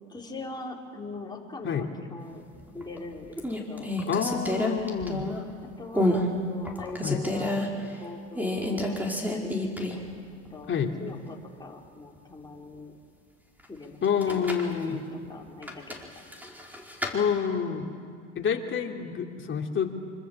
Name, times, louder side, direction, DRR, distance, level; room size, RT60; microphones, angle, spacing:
voice 1, 0.1-2.4 2.7-3.9 5.8-7.6 8.0-9.0 9.3-9.7 10.3-10.7 11.0-13.0 13.7-16.0, left 3 dB, 10° left, -1 dB, 4.4 m, -40 dB
sound 1, 2.6-3.0 3.4-5.5 5.9-6.3 6.6-7.7 8.3-10.1 10.4-10.5 14.0-14.7 15.6-17.1, left 1 dB, 5° right, 4.6 m, -29 dB
voice 2, 4.1-5.3 7.0-7.2 10.7-10.9 14.0-15.0 17.1-17.9 18.3-19.9, left 7 dB, 35° left, 3 dB, 3.0 m, -28 dB
26.5 x 25.5 x 7.4 m, 2.2 s
hypercardioid pair, 85°, 36 cm